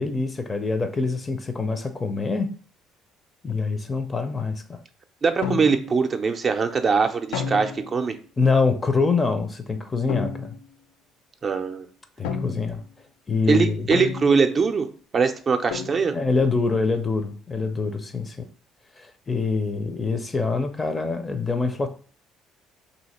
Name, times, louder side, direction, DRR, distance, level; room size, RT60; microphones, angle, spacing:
voice 1, 0.0-2.5 3.4-4.8 8.4-10.6 12.2-12.8 13.3-13.9 16.1-18.5 19.0-21.9, left 4 dB, 30° left, 0.5 m, -25 dB
voice 2, 5.2-8.2 11.4-11.9 13.5-14.9 15.1-16.2, right 5 dB, 40° right, 0.5 m, -22 dB
sound 1, 5.4-6.1 7.3-8.0 10.1-10.7 12.2-12.8 13.9-14.7 15.7-16.3, left 6 dB, 75° left, 0.3 m, -31 dB
2.8 x 2.8 x 4.1 m
hypercardioid pair, 60°, 0 cm